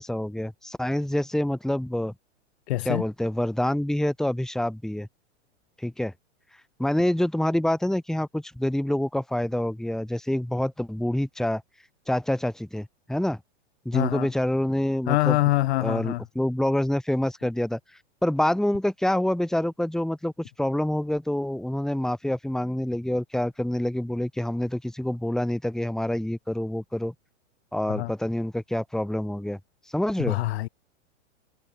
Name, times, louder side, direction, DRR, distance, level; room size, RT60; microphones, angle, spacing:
voice 1, 0.0-2.1 2.8-5.1 5.8-6.1 6.8-11.6 12.1-13.4 13.8-15.4 15.8-17.8 18.2-20.3 20.6-27.1 27.7-29.6 29.9-30.4, left 1 dB, ahead, 3.1 m, -26 dB
voice 2, 2.7-3.0 13.9-14.3 15.1-16.2 27.9-28.1 30.2-30.7, left 16 dB, 60° left, 3.9 m, -25 dB
hypercardioid pair, 135°, 35 cm